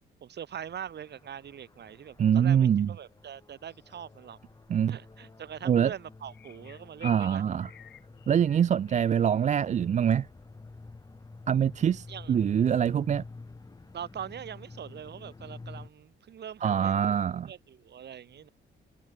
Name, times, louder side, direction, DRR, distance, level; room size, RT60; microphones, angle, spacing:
voice 1, 0.2-4.4 4.9-7.5 12.1-12.3 13.9-17.2 17.4-18.5, right 9 dB, 60° right, 3.2 m, -42 dB
sound 1, 0.5-15.9, left 3 dB, 20° left, 1.5 m, -49 dB
voice 2, 2.2-2.9 4.7-5.0 5.7-5.9 7.0-7.7 8.3-10.3 11.5-13.2 16.6-17.5, right 8 dB, 40° right, 0.4 m, -24 dB
sound 2, 3.7-4.0 6.3-9.0, left 10 dB, 65° left, 1.9 m, -49 dB
sound 3, 10.1-10.4 12.6-13.0, right 14 dB, 85° right, 7.3 m, -65 dB
cardioid pair, 90°, 20 cm